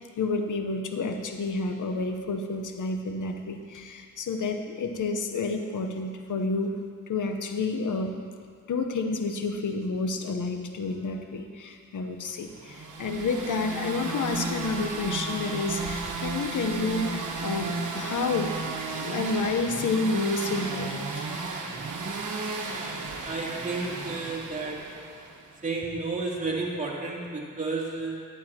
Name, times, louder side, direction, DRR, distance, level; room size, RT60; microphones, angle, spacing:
voice 1, 0.2-6.7 7.1-8.1 8.7-18.7 19.0-21.3, left 3 dB, 65° left, 6 dB, 0.9 m, -30 dB
sound 1, 12.6-25.5, right 3 dB, 65° right, 1.3 m, -34 dB
voice 2, 23.2-25.0 25.6-28.3, right 3 dB, 20° right, -4 dB, 2.7 m, -32 dB
11.5 x 11.5 x 2.9 m, 2.1 s
supercardioid pair, 50°, 34 cm